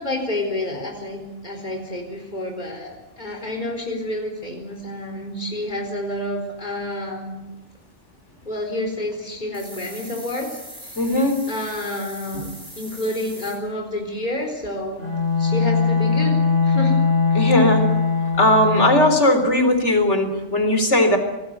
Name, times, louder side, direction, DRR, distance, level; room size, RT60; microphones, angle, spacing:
voice 1, 0.0-7.4 8.4-11.0 11.5-12.5 12.8-15.1 15.4-16.4 16.6-17.0 17.3-17.5, left 1 dB, 40° left, 2 dB, 4.4 m, -29 dB
sound 1, 9.5-13.6, equal, 20° right, 6.7 m, -40 dB
voice 2, 11.0-11.4 17.3-17.9 18.4-21.2, left 1 dB, 70° left, 7 dB, 4.3 m, -18 dB
Bowed string instrument, 15.0-19.3, left 5 dB, 80° right, 8.4 m, -20 dB
26.0 x 19.5 x 8.2 m, 1.0 s
omnidirectional pair, 1.2 m